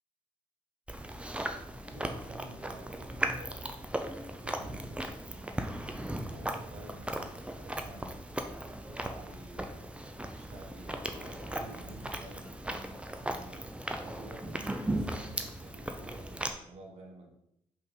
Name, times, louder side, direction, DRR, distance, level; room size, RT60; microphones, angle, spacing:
Chewing mastication, 0.9-16.5, right 1 dB, 10° right, 0.7 m, -37 dB
voice 1, 1.9-3.8 4.2-8.2 8.9-13.7 14.0-17.3, right 1 dB, 60° right, 1 dB, 1.3 m, -50 dB
5.3 x 3.8 x 4.7 m, 0.79 s
supercardioid pair, 60°, 12 cm